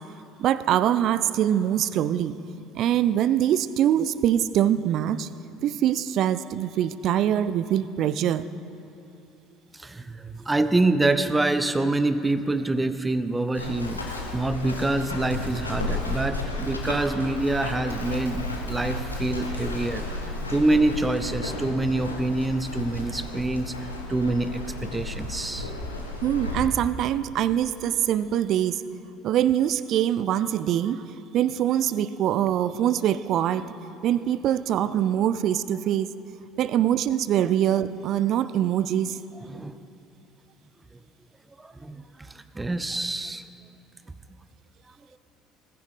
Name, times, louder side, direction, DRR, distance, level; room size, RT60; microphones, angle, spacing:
voice 1, 0.4-2.3 2.7-5.3 5.6-8.5 26.2-28.8 29.2-31.0 31.3-33.7 34.0-36.1 36.6-39.2, right 11 dB, 50° right, 16 dB, 0.4 m, -23 dB
voice 2, 9.7-25.7 39.5-39.8 41.6-43.4, right 2 dB, 15° right, 12 dB, 0.6 m, -26 dB
Run, 13.5-26.6, left 2 dB, 85° left, 1.1 m, -33 dB
19.5 x 10.0 x 3.7 m, 2.7 s
figure-of-eight pair, 60°, 0 cm